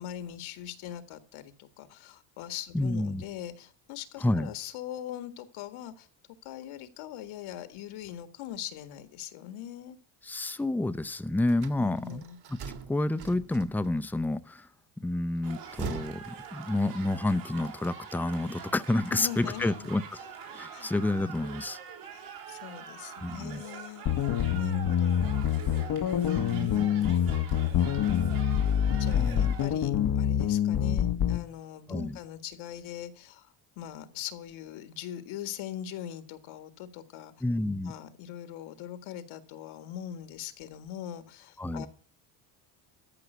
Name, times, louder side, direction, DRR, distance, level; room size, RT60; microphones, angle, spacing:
voice 1, 0.0-6.1 6.4-10.0 11.8-12.4 19.1-19.9 20.7-20.9 22.1-24.1 24.6-25.4 26.2-27.6 29.0-37.3 37.8-41.9, left 10 dB, 75° left, 11 dB, 1.8 m, -41 dB
voice 2, 2.7-3.2 4.2-4.5 10.2-12.2 12.9-14.7 15.0-20.0 20.5-21.8 23.2-23.6 26.4-26.7 29.1-29.5 31.9-32.2 37.4-37.9 41.6-41.9, left 2 dB, 5° left, 14 dB, 0.6 m, -29 dB
sound 1, 11.5-14.1 15.4-17.2, right 6 dB, 50° right, 1.9 m, -42 dB
sound 2, 15.4-29.7, right 7 dB, 80° right, 4.8 m, -45 dB
sound 3, 24.1-31.4, left 9 dB, 45° left, 0.9 m, -26 dB
13.5 x 5.6 x 9.3 m, 0.43 s
supercardioid pair, 80°, 49 cm